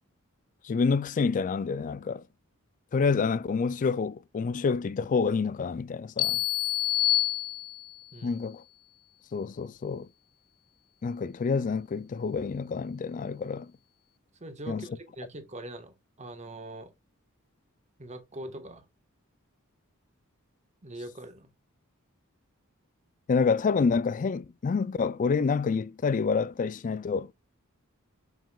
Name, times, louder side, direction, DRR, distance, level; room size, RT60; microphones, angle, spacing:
voice 1, 0.6-2.2 2.9-6.4 8.2-8.6 9.3-10.1 11.0-13.7 14.7-14.9 23.3-27.3, left 5 dB, 35° left, 0.3 m, -28 dB
sound 1, 6.2-8.0, left 14 dB, 85° left, 0.6 m, -27 dB
voice 2, 14.4-16.9 18.0-18.8 20.8-21.5, right 1 dB, 30° right, 1.4 m, -42 dB
6.9 x 6.0 x 2.3 m
head